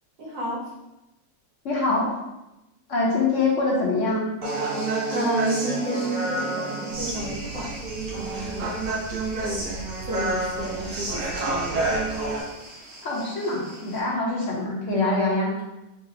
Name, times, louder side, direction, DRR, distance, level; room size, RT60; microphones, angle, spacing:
voice 1, 0.2-0.6 5.1-7.7 8.1-8.7 9.3-9.7 10.0-12.0, right 2 dB, 75° right, -2 dB, 1.5 m, -31 dB
voice 2, 1.6-2.1 2.9-4.3 13.0-15.5, left 3 dB, 50° left, -4 dB, 1.0 m, -24 dB
sound 1, 4.4-14.0, right 1 dB, 25° right, 0.7 m, -45 dB
Human voice, 4.4-12.4, right 2 dB, 60° right, 1.0 m, -29 dB
sound 2, 6.9-12.3, right 2 dB, 90° left, 1.8 m, -40 dB
4.1 x 2.1 x 3.7 m, 0.97 s
omnidirectional pair, 2.0 m